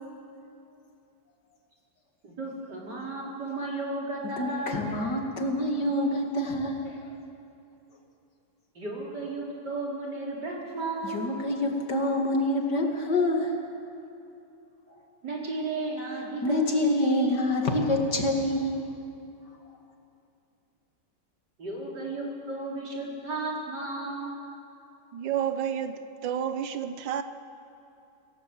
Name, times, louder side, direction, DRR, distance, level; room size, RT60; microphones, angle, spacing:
voice 1, 2.2-4.9 8.7-11.3 15.2-17.4 21.6-24.4, right 2 dB, 70° right, 4.5 m, -34 dB
voice 2, 4.4-7.1 11.0-13.6 16.4-18.8, left 1 dB, 65° left, 2.9 m, -26 dB
voice 3, 25.1-27.2, right 9 dB, 90° right, 1.6 m, -30 dB
26.0 x 15.5 x 7.9 m
omnidirectional pair, 1.9 m